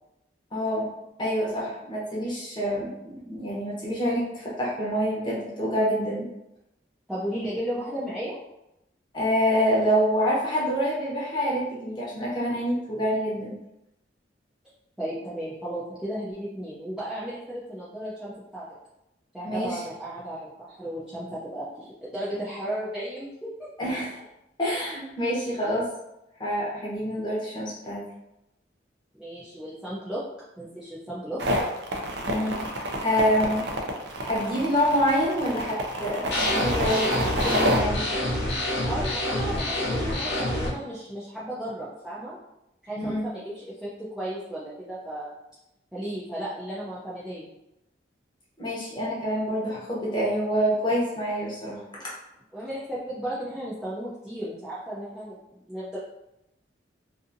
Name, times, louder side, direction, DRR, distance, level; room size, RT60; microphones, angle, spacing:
voice 1, 0.5-0.9 1.2-6.3 9.1-13.6 19.4-19.8 23.8-24.1 24.6-25.9 26.4-28.0 32.3-32.6 33.0-33.7 34.2-38.1 43.0-43.2 48.6-51.8, equal, 25° left, -6 dB, 0.8 m, -26 dB
voice 2, 7.1-8.4 15.0-18.7 19.3-23.5 29.1-30.2 30.6-31.4 38.9-42.4 42.8-45.3 45.9-47.5 52.5-56.0, right 1 dB, 5° right, -10 dB, 0.4 m, -34 dB
sound 1, 31.4-37.8, right 1 dB, 70° right, 0.5 m, -28 dB
sound 2, 36.3-40.7, left 1 dB, 75° left, 0.8 m, -27 dB
2.6 x 2.6 x 2.6 m, 0.89 s
head